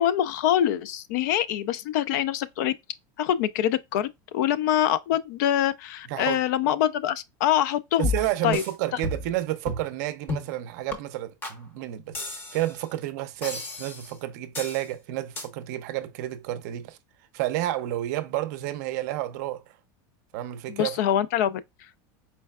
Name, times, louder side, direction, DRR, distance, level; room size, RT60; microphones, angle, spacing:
voice 1, 0.0-2.7 3.2-8.1 8.4-8.6 20.7-21.6, left 11 dB, 60° left, 0.4 m, -24 dB
voice 2, 6.1-6.4 8.0-17.0 17.3-19.6 20.3-21.0, right 14 dB, 55° right, 0.5 m, -30 dB
sound 1, 8.0-8.7 9.0-9.4 9.7-9.9 10.3-10.5 10.9-11.0 11.4-11.6 12.1-12.8 13.4-14.1 14.5-14.9 15.4-15.5, left 2 dB, 20° left, 0.6 m, -32 dB
4.4 x 3.1 x 2.3 m
supercardioid pair, 165°, 11 cm